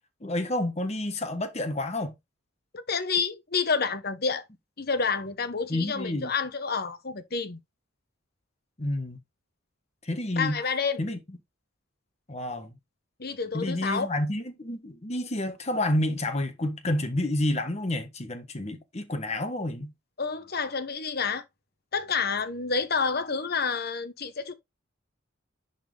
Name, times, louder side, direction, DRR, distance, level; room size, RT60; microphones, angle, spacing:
voice 1, 0.2-2.1 5.7-6.3 8.8-9.2 10.0-10.6 11.0-11.2 12.3-12.7 13.5-19.9, left 1 dB, 30° left, 1.3 m, -29 dB
voice 2, 2.7-4.4 4.8-7.6 10.4-11.0 13.2-14.1 20.2-21.4 21.9-24.5, left 5 dB, 50° left, 1.0 m, -29 dB
10.0 x 4.1 x 3.4 m
head